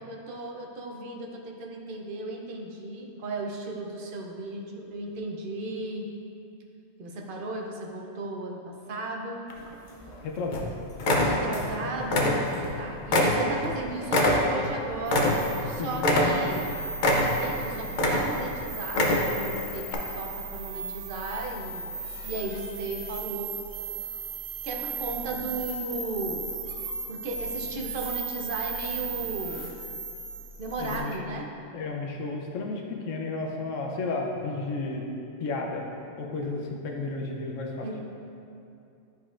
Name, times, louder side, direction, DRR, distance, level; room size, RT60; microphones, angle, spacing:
voice 1, 0.0-6.1 7.0-9.5 11.2-12.5 12.8-16.6 17.2-21.9 22.2-23.6 24.6-26.5 27.0-29.8 30.6-31.5 37.8-38.0, right 2 dB, 50° right, 0 dB, 0.7 m, -35 dB
sound 1, 9.5-10.1 10.5-10.7 11.0-11.7 12.0-12.7 13.1-15.7 16.0-16.6 17.0-17.6 17.9-18.5 18.9-19.4 19.9-20.0, left 1 dB, 50° left, 0.7 m, -24 dB
voice 2, 10.2-10.7 11.0-12.4 12.6-12.7 15.8-16.6 30.8-31.2 31.7-35.1 35.4-35.8 36.2-37.9, left 3 dB, 80° left, 1 dB, 1.1 m, -33 dB
sound 2, 15.1-31.0, right 4 dB, 85° right, 1.2 m, -37 dB
10.0 x 4.2 x 2.5 m, 2.6 s
omnidirectional pair, 1.3 m